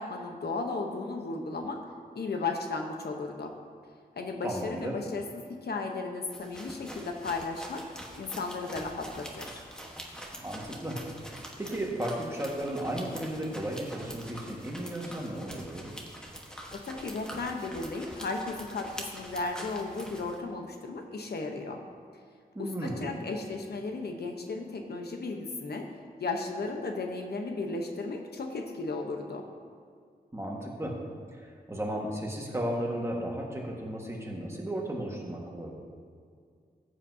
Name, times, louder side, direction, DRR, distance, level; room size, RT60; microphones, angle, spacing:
voice 1, 0.0-1.8 2.1-3.5 4.2-9.6 16.7-21.8 22.6-25.9 26.2-29.4, left 3 dB, 90° left, 3 dB, 0.9 m, -35 dB
voice 2, 4.4-5.0 10.4-11.0 11.2-15.9 22.5-23.0 30.3-30.9 31.3-35.7, right 1 dB, 15° right, -2 dB, 1.6 m, -34 dB
sound 1, 6.3-20.4, equal, 5° left, 1.2 m, -45 dB
14.5 x 8.1 x 2.8 m, 2.2 s
wide cardioid pair, 110°, 16 cm